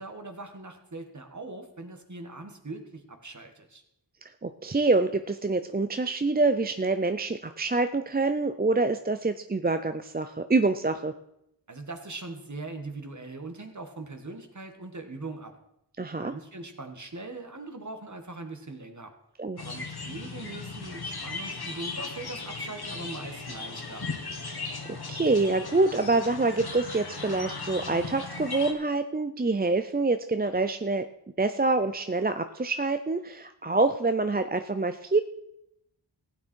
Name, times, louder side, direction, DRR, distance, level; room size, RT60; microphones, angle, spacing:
voice 1, 0.0-3.8 11.7-15.5 16.2-19.1 19.6-24.1, right 2 dB, 40° right, 6 dB, 1.7 m, -41 dB
voice 2, 4.4-11.1 16.0-16.3 19.4-19.6 24.9-31.1 31.4-35.2, right 3 dB, 20° right, 9 dB, 0.5 m, -26 dB
sound 1, 19.6-28.7, left 3 dB, 60° left, 1.6 m, -37 dB
15.5 x 8.9 x 4.6 m, 0.81 s
wide cardioid pair, 55°, 43 cm